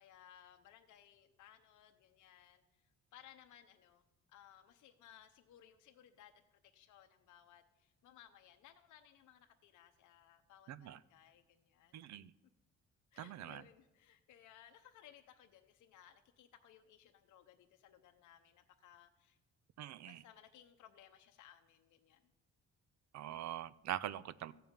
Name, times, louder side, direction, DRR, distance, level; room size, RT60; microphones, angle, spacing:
voice 1, 0.0-4.0 4.3-12.0 13.1-19.4 20.0-22.3, left 10 dB, 80° left, 0.8 m, -62 dB
voice 2, 10.7-11.0 11.9-12.3 13.2-13.6 19.8-20.2 23.1-24.5, right 12 dB, 65° right, 0.5 m, -43 dB
14.5 x 5.4 x 8.8 m
cardioid pair, 90°, 30 cm